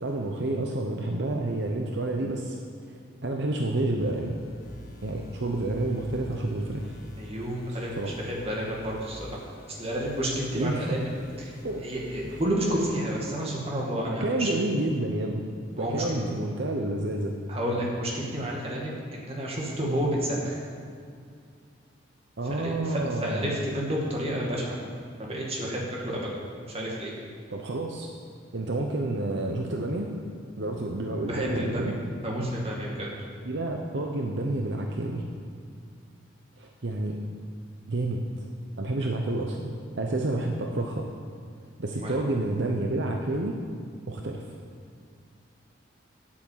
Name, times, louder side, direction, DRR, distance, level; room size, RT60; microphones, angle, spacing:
voice 1, 0.0-2.5 2.9-4.3 5.0-6.9 7.7-8.2 10.5-11.0 11.6-11.8 12.2-12.4 14.1-15.4 15.8-17.3 22.4-23.5 27.5-28.1 28.5-30.1 30.6-31.9 33.4-35.2 36.6-37.2 37.9-38.2 38.8-41.1 41.8-43.5 44.1-44.4, right 2 dB, 65° right, 2 dB, 0.8 m, -29 dB
sound 1, 4.0-12.5, left 1 dB, 45° left, 1.6 m, -48 dB
voice 2, 7.2-9.4 9.7-11.1 11.4-11.5 11.8-14.5 15.8-16.0 17.5-20.5 22.4-24.7 25.3-26.4 26.7-27.1 31.3-31.8 32.2-33.1 42.0-42.1, equal, 30° right, -3 dB, 2.1 m, -30 dB
8.6 x 8.6 x 7.5 m, 2.2 s
head